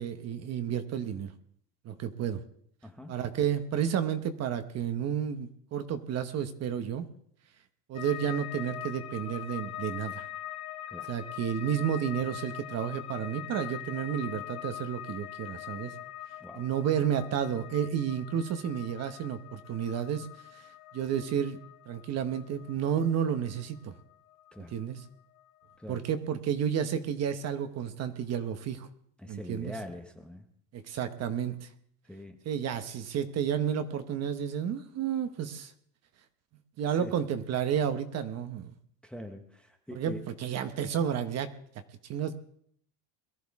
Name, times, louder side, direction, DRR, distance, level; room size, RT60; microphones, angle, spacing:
voice 1, 0.0-1.3 1.8-2.4 3.1-7.1 7.9-10.3 11.1-15.9 16.5-20.3 20.5-20.6 20.9-21.6 21.9-23.9 24.7-25.0 25.9-28.9 29.3-29.7 30.7-31.7 32.4-35.7 36.8-38.7 39.9-41.5 42.0-42.3, right 8 dB, 35° right, 9 dB, 1.0 m, -31 dB
voice 2, 2.8-3.2 10.9-11.1 16.4-16.7 24.5-24.7 25.8-26.0 29.2-30.5 32.1-32.4 36.9-37.1 39.0-40.3, left 1 dB, ahead, 5 dB, 0.8 m, -44 dB
sound 1, 7.9-25.1 25.3-26.1, left 13 dB, 40° left, 1.2 m, -43 dB
22.0 x 13.5 x 3.6 m, 0.65 s
cardioid pair, 155°, 44 cm